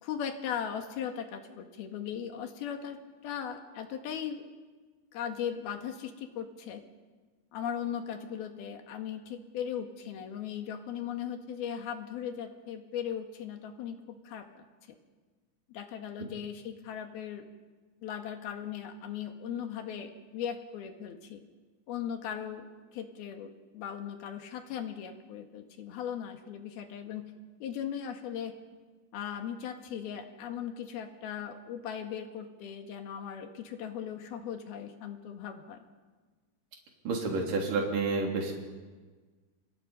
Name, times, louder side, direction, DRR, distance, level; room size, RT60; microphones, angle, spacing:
voice 1, 0.0-4.5 5.1-6.8 7.5-14.6 15.7-17.5 18.0-21.4 21.9-27.3 27.6-28.6 29.1-35.8, left 8 dB, 80° left, 5 dB, 3.7 m, -38 dB
voice 2, 37.0-38.5, right 3 dB, 60° right, 0 dB, 4.8 m, -29 dB
29.5 x 25.5 x 5.5 m, 1.4 s
omnidirectional pair, 4.4 m